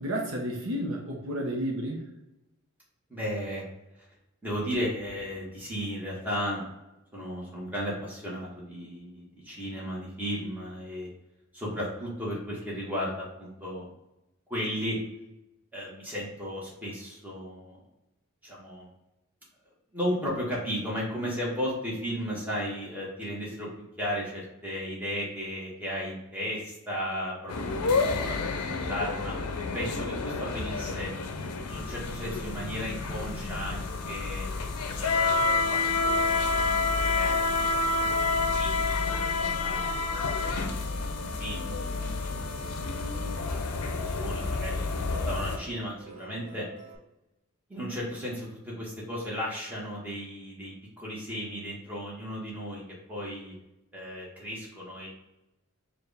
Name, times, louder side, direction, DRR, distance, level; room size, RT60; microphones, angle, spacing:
voice 1, 0.0-2.0, equal, 65° right, 0 dB, 0.8 m, -31 dB
voice 2, 3.1-3.6 4.4-6.6 7.1-11.1 11.5-13.9 14.5-15.0 15.7-17.8 18.4-18.9 19.9-23.7 24.0-29.3 29.7-31.1 31.7-34.5 35.0-37.7 38.3-40.0 41.4-42.0 43.5-46.6 47.7-52.8 53.1-53.5 53.9-55.1, equal, 5° right, -6 dB, 1.3 m, -35 dB
sound 1, 27.5-45.6, left 3 dB, 85° left, 0.5 m, -29 dB
Musical instrument, 40.6-47.0, right 3 dB, 35° right, 0.8 m, -48 dB
4.6 x 2.5 x 3.3 m, 0.92 s
head